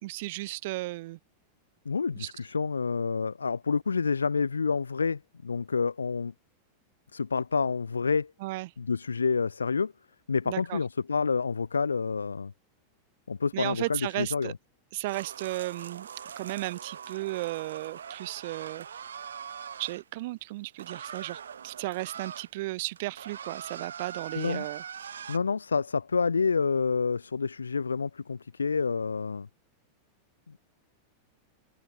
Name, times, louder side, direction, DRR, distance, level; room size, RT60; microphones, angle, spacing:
voice 1, 0.0-1.2 2.2-2.3 8.4-8.7 10.4-10.8 13.5-14.5 14.9-16.1 16.4-18.9 19.8-24.8 25.1-25.3, right 20 dB, 50° right, 1.4 m, -34 dB
voice 2, 1.8-6.3 7.1-8.3 8.8-9.9 10.3-12.5 13.3-14.5 24.3-24.7 25.3-29.5, left 5 dB, 75° left, 1.5 m, -28 dB
sound 1, 15.1-20.0 20.8-22.5 22.8-25.4, right 7 dB, 70° right, 5.5 m, -42 dB
figure-of-eight pair, 90°, 0 cm